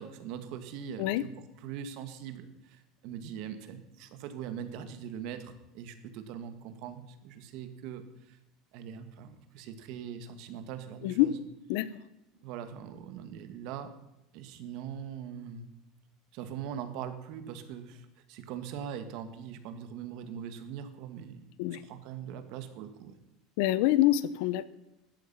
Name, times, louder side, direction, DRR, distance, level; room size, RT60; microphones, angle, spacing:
voice 1, 0.0-1.3 1.6-8.4 8.7-11.3 12.4-13.9 14.3-15.7 16.3-21.4 21.7-23.2, right 8 dB, 50° right, 9 dB, 1.8 m, -41 dB
voice 2, 23.6-24.7, left 14 dB, 60° left, 17 dB, 0.8 m, -26 dB
16.0 x 12.0 x 5.6 m, 0.91 s
cardioid pair, 170°, 0 cm